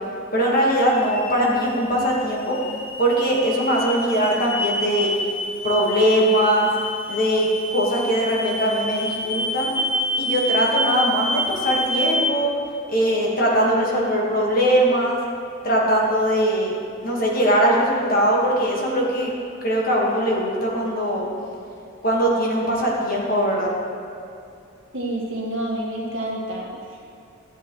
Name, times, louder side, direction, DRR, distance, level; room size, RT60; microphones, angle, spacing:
voice 1, 0.3-2.6 3.0-5.1 5.6-6.7 7.1-9.7 10.2-12.5 12.9-15.2 15.6-16.7 17.0-19.3 19.6-21.3 22.0-23.7, equal, 45° left, -3 dB, 1.4 m, -21 dB
sound 1, 0.6-12.3, equal, 25° left, 0.6 m, -28 dB
voice 2, 24.9-27.1, right 1 dB, 60° right, -4 dB, 1.7 m, -29 dB
12.0 x 7.5 x 3.0 m, 2.6 s
head